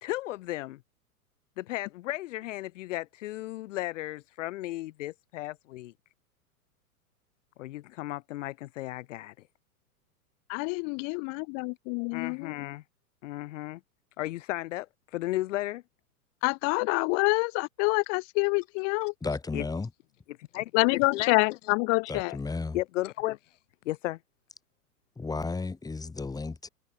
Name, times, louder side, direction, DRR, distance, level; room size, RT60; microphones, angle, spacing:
voice 1, 0.0-0.8 1.6-5.9 7.6-9.3 12.1-12.8 13.2-13.8 14.2-14.9 15.1-15.8 19.0-19.1 19.5-19.6 20.5-21.7 22.7-23.4 23.8-24.2, left 16 dB, 55° left, 1.7 m, -34 dB
voice 2, 10.5-12.5 16.4-19.1 20.7-22.4, left 38 dB, 30° left, 0.7 m, -27 dB
voice 3, 19.2-19.9 22.1-22.8 25.2-26.7, left 3 dB, 10° left, 2.0 m, -33 dB
figure-of-eight pair, 100°, 45 cm